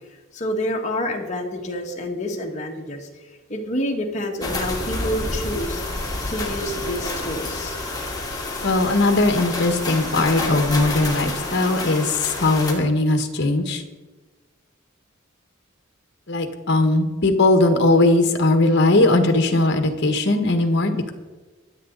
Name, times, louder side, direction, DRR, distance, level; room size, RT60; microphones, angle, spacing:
voice 1, 0.3-3.1 3.5-5.8 6.2-7.8, equal, 35° left, 1 dB, 1.8 m, -28 dB
sound 1, 4.4-12.7, left 2 dB, 20° left, 2.3 m, -29 dB
voice 2, 8.6-13.8 16.3-21.1, left 2 dB, 55° left, 6 dB, 1.4 m, -19 dB
23.5 x 8.2 x 4.0 m, 1.2 s
head